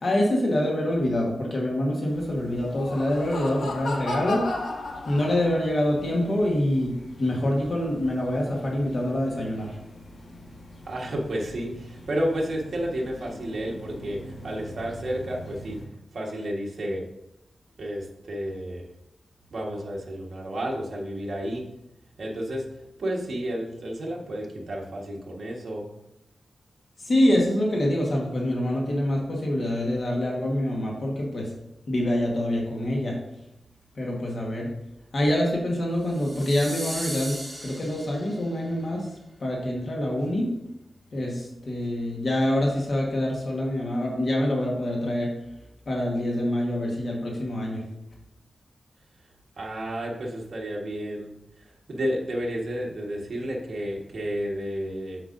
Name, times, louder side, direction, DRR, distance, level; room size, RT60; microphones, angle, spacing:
voice 1, 0.0-4.4 5.1-6.9 7.2-9.7 27.0-31.5 31.9-33.2 33.9-34.7 35.1-39.1 39.4-40.5 41.1-45.3 45.9-47.8, left 1 dB, 50° left, -2 dB, 1.4 m, -25 dB
sound 1, 2.1-15.9, equal, 70° left, 1.4 m, -45 dB
Laughter, 2.6-5.8, left 2 dB, 85° left, 1.0 m, -33 dB
voice 2, 10.9-15.8 16.1-17.0 17.8-18.8 19.5-21.7 22.2-22.6 23.0-25.8 49.6-51.3 51.6-55.2, equal, 60° right, -2 dB, 1.4 m, -31 dB
sound 2, 36.1-38.5, equal, 5° left, 2.2 m, -37 dB
7.5 x 6.8 x 2.6 m, 0.86 s
wide cardioid pair, 150°, 0 cm